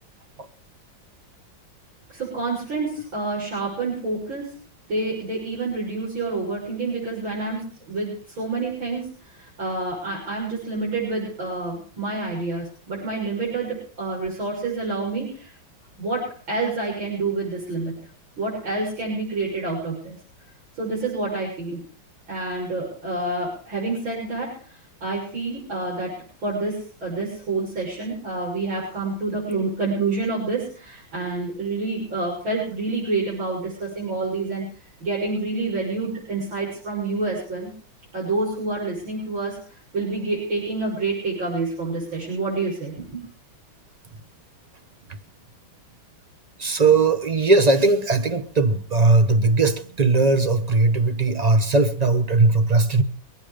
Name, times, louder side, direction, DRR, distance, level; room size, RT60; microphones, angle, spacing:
voice 1, 2.1-4.6 4.9-15.5 16.0-18.0 18.4-20.2 20.8-21.8 22.3-26.2 26.4-34.7 35.0-37.7 38.1-39.6 39.9-43.3, right 3 dB, 80° right, 7.5 m, -28 dB
voice 2, 46.6-53.0, right 3 dB, 30° right, 0.8 m, -19 dB
24.0 x 9.6 x 5.0 m
omnidirectional pair, 2.1 m